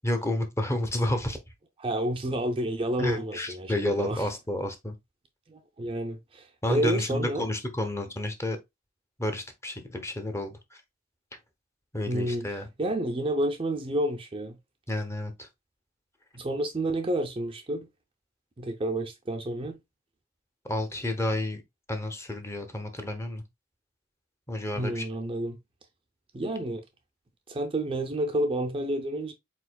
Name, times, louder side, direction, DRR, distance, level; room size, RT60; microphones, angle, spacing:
voice 1, 0.0-1.4 3.0-4.9 6.6-8.6 9.2-10.6 11.9-12.7 14.9-15.5 20.7-21.6 21.9-23.4 24.5-25.0, left 1 dB, 15° left, 0.8 m, -30 dB
voice 2, 1.8-4.3 5.5-7.5 12.1-14.6 16.3-17.9 18.6-19.8 24.7-25.6 26.3-26.8 27.5-29.3, right 1 dB, 25° right, 0.5 m, -30 dB
4.8 x 4.2 x 2.2 m
head